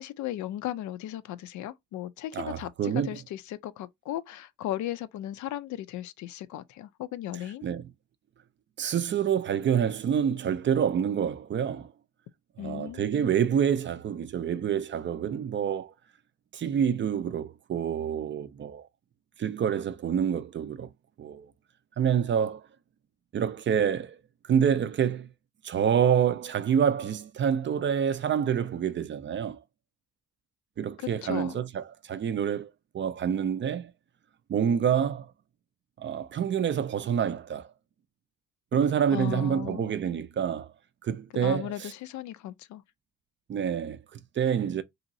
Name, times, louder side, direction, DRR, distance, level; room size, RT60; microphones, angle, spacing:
voice 1, 0.0-7.6 12.6-13.3 31.0-31.6 39.1-39.9 41.3-42.8, left 12 dB, 70° left, 0.4 m, -36 dB
voice 2, 2.3-3.2 7.6-7.9 8.8-11.9 12.6-15.9 16.5-18.9 19.4-20.9 21.2-21.5 22.0-22.7 23.3-24.2 24.5-25.3 25.6-29.6 30.8-33.9 34.5-35.3 36.0-37.7 38.7-40.7 41.0-41.9 43.5-44.8, right 8 dB, 40° right, 0.4 m, -27 dB
2.9 x 2.7 x 2.6 m
cardioid pair, 90°, 30 cm